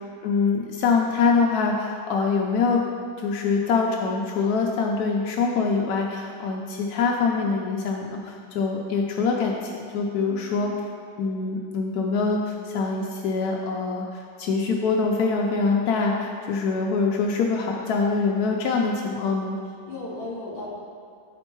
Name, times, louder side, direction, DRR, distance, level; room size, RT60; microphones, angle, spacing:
voice 1, 0.2-2.8 3.2-10.7 11.2-19.6, left 4 dB, 80° left, 0 dB, 0.8 m, -24 dB
voice 2, 10.2-10.7 19.9-20.7, left 2 dB, 30° left, -6 dB, 1.8 m, -36 dB
8.7 x 4.3 x 4.5 m, 2.2 s
omnidirectional pair, 2.2 m